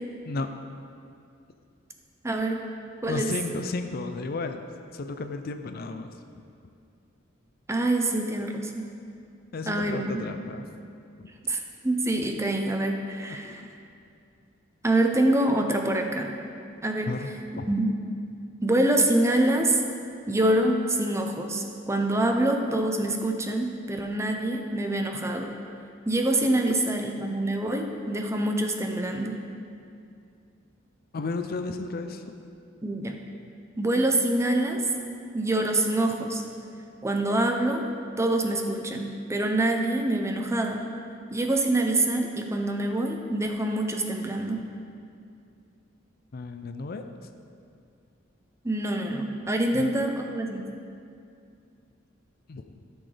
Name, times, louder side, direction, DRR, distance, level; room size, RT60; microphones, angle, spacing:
voice 1, 2.2-2.6 3.0-3.3 7.7-8.9 9.7-10.2 11.4-13.6 14.8-16.3 16.8-17.1 17.7-17.9 18.6-19.8 20.3-25.5 26.1-29.4 32.8-33.2 33.8-34.8 35.3-36.4 37.0-37.8 38.2-40.8 41.3-44.6 48.6-50.7, right 1 dB, 15° right, 3 dB, 0.6 m, -25 dB
voice 2, 3.1-4.6 4.9-6.2 9.5-10.7 11.2-11.3 13.3-13.7 17.1-17.3 17.6-17.7 31.1-32.2 46.3-47.0 49.7-49.9 52.5-52.8, left 3 dB, 50° left, 7 dB, 0.5 m, -33 dB
13.5 x 6.2 x 3.4 m, 2.4 s
head